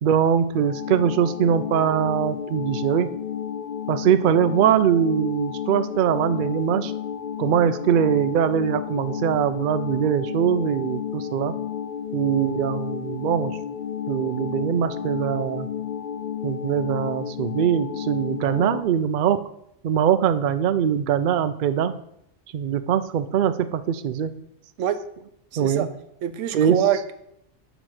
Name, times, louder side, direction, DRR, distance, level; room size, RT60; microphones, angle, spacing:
voice 1, 0.0-3.1 3.9-6.9 7.4-11.5 12.1-13.6 14.1-15.7 16.4-19.4 19.8-21.9 22.5-24.3 25.6-25.9 26.5-26.8, right 9 dB, 60° right, 12 dB, 0.5 m, -22 dB
sound 1, 0.5-18.8, left 9 dB, 65° left, 0.4 m, -32 dB
voice 2, 25.5-25.9 26.2-27.1, right 10 dB, 85° right, 10 dB, 1.0 m, -24 dB
8.8 x 3.0 x 6.4 m, 0.77 s
omnidirectional pair, 1.2 m